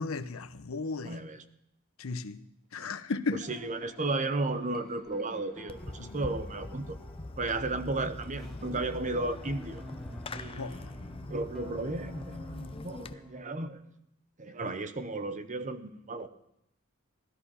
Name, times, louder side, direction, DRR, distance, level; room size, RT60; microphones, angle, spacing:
voice 1, 0.0-1.2 2.0-2.4 2.7-3.5 6.0-6.2 10.6-10.8, left 4 dB, 80° left, 0.8 m, -35 dB
voice 2, 1.0-1.4 2.8-2.9 3.5-7.0 7.4-9.8 10.3-10.7 11.3-13.8 14.4-16.3, right 2 dB, 35° right, 0.9 m, -34 dB
sound 1, 3.4-13.7, left 1 dB, ahead, 2.2 m, -48 dB
Fireworks, 5.7-13.1, left 2 dB, 25° left, 0.6 m, -43 dB
16.0 x 13.5 x 5.6 m
head